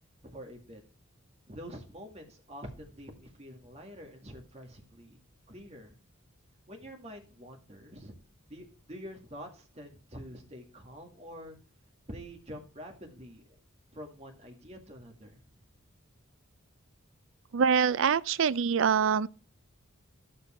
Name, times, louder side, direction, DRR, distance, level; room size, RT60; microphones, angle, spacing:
voice 1, 0.3-0.8 1.5-5.2 5.5-5.9 6.7-8.1 8.5-11.6 12.1-13.4 13.9-15.4, equal, 30° right, 2.0 m, -46 dB
voice 2, 17.5-19.3, right 6 dB, 65° right, 0.4 m, -25 dB
10.0 x 7.4 x 4.3 m
head